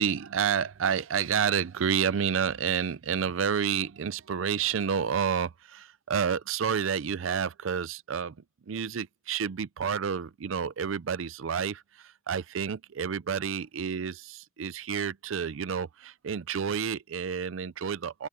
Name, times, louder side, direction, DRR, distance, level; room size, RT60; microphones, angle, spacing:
voice 1, 0.0-8.4 8.7-18.3, right 7 dB, 80° right, 0.5 m, -29 dB
open air
head